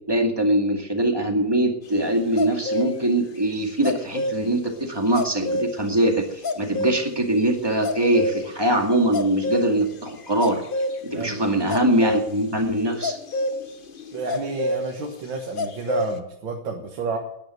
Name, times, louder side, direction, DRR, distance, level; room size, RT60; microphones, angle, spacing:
voice 1, 0.1-6.2 6.6-10.6 11.0-13.2, right 1 dB, 15° right, 2 dB, 2.1 m, -22 dB
sound 1, 2.4-2.9 3.8-4.4 5.1-5.7 6.4-7.0 7.7-8.4 9.1-10.0 10.4-11.0 11.7-12.4 12.7-14.8 15.6-16.1, left 1 dB, 40° left, 0.8 m, -26 dB
voice 2, 11.1-11.4 14.1-17.2, right 4 dB, 80° right, 1 dB, 2.2 m, -30 dB
10.5 x 10.5 x 9.3 m, 0.80 s
omnidirectional pair, 2.1 m